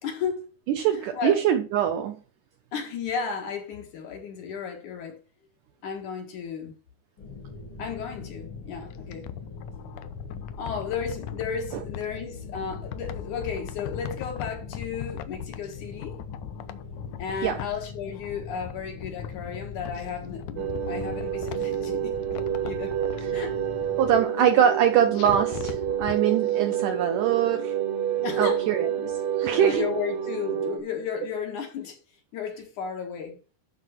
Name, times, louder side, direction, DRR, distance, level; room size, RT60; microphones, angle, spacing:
voice 1, 0.0-0.5 0.9-1.4 2.7-5.2 5.8-6.7 7.8-9.3 10.6-16.2 17.2-22.2 22.6-23.0 23.3-23.6 24.4-24.5 28.2-28.6 29.5-32.0 32.3-33.4, left 6 dB, 60° left, 2.9 m, -34 dB
voice 2, 0.7-2.2 17.4-17.6 23.2-23.4 24.0-27.8 28.4-29.1 29.4-29.9, right 9 dB, 75° right, 1.9 m, -23 dB
sound 1, 7.2-24.2, left 5 dB, 40° left, 2.2 m, -41 dB
sound 2, 8.9-12.1 12.5-15.7 16.0-17.9 18.2-20.0 20.4-21.9 22.2-23.2 25.1-26.2 26.5-26.6, left 11 dB, 80° left, 1.8 m, -39 dB
sound 3, 20.6-30.8, right 10 dB, 55° right, 2.4 m, -28 dB
12.0 x 4.6 x 5.8 m
omnidirectional pair, 4.4 m